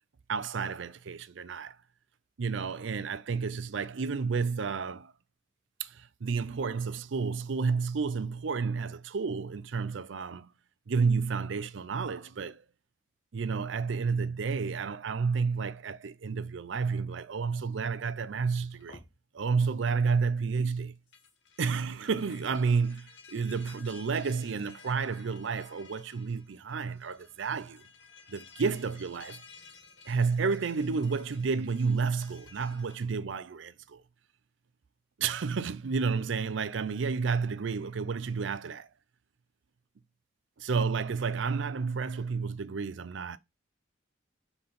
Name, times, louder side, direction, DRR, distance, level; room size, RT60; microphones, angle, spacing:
voice 1, 0.3-1.8 2.4-5.1 5.8-10.5 10.9-12.6 13.3-19.0 19.3-20.9 21.6-27.8 28.3-29.4 30.1-34.0 35.2-38.9 40.6-43.4, right 5 dB, 70° right, 0.5 m, -31 dB
sound 1, 18.3-19.1 20.9-33.1, left 5 dB, 65° left, 1.4 m, -55 dB
5.7 x 4.1 x 5.1 m
head